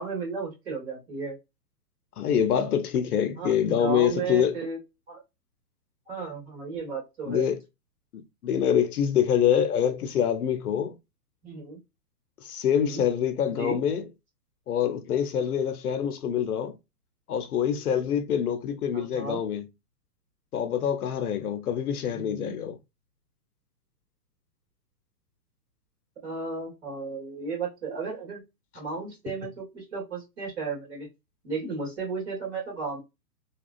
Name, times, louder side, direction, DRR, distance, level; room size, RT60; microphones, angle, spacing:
voice 1, 0.0-1.4 3.4-4.8 5.1-5.2 6.1-7.5 11.4-11.8 12.8-13.0 13.5-13.8 18.9-19.4 22.1-22.6 26.2-28.4 28.7-31.1 31.4-33.0, right 4 dB, 40° right, 1.7 m, -34 dB
voice 2, 2.2-4.6 7.3-7.6 8.1-11.0 12.4-14.1 14.7-16.8 17.3-19.7 20.5-22.8, left 8 dB, 65° left, 0.6 m, -25 dB
2.8 x 2.3 x 2.4 m
hypercardioid pair, 175°, 49 cm